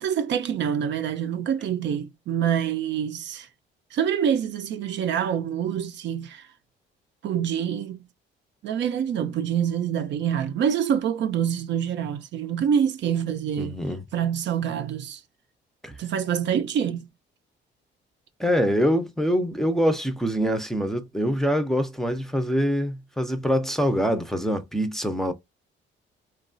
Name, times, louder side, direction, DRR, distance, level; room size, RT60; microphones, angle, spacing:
voice 1, 0.0-3.5 3.9-6.5 7.2-8.1 8.6-13.8 14.1-15.2 16.0-17.1, right 8 dB, 65° right, 0.5 m, -26 dB
voice 2, 13.6-14.0 15.8-16.0 18.4-25.3, equal, ahead, 0.5 m, -24 dB
3.0 x 2.3 x 2.5 m
cardioid pair, 90°, 20 cm